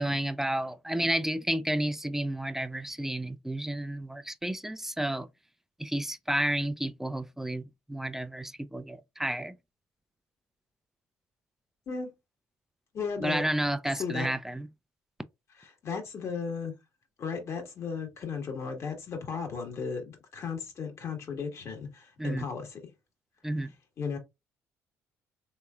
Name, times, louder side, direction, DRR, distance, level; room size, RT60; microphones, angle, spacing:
voice 1, 0.0-5.3 5.8-7.6 7.9-9.5 13.2-14.7 22.2-22.5 23.4-23.7, right 1 dB, 5° right, 0.4 m, -31 dB
voice 2, 12.9-13.4 13.8-14.3 15.6-16.7 17.2-20.0 20.3-22.8 24.0-24.2, left 5 dB, 55° left, 1.4 m, -35 dB
3.5 x 3.0 x 2.3 m
supercardioid pair, 70°, 6 cm